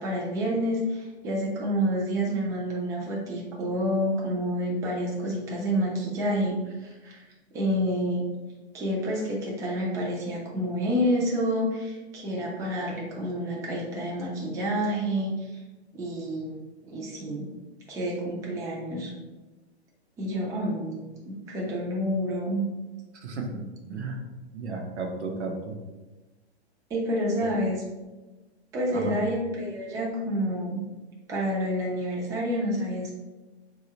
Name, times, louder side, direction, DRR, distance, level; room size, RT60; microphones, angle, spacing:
voice 1, 0.0-7.2 7.5-8.3 8.7-15.6 15.9-17.5 17.9-19.1 20.2-22.6 26.9-27.8 28.7-30.8 31.3-33.1, equal, 10° right, -3 dB, 0.4 m, -29 dB
voice 2, 23.1-24.2 24.5-25.7 27.4-27.5 28.9-29.1, right 3 dB, 85° right, 1 dB, 0.8 m, -34 dB
3.9 x 2.4 x 2.8 m, 1.2 s
hypercardioid pair, 125°, 33 cm